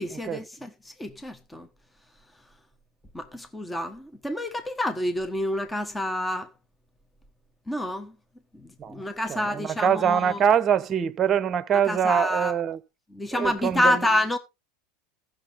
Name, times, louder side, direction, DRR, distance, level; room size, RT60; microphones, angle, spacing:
voice 1, 0.0-1.7 3.1-6.5 7.7-8.1 8.5-10.4 11.9-12.5 13.1-14.4, left 1 dB, 10° left, 1.2 m, -28 dB
voice 2, 9.3-12.8 13.3-14.0, right 8 dB, 35° right, 0.9 m, -24 dB
15.0 x 6.5 x 3.7 m
hypercardioid pair, 105°, 0 cm